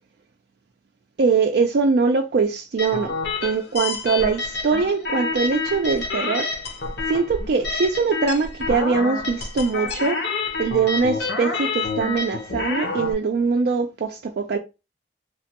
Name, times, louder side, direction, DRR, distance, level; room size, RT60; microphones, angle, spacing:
voice 1, 1.2-3.1 3.4-6.5 7.1-10.2 10.6-14.6, right 4 dB, 60° right, 0.3 m, -22 dB
sound 1, 2.8-13.1, left 3 dB, 60° left, 0.7 m, -28 dB
3.1 x 2.2 x 2.8 m
head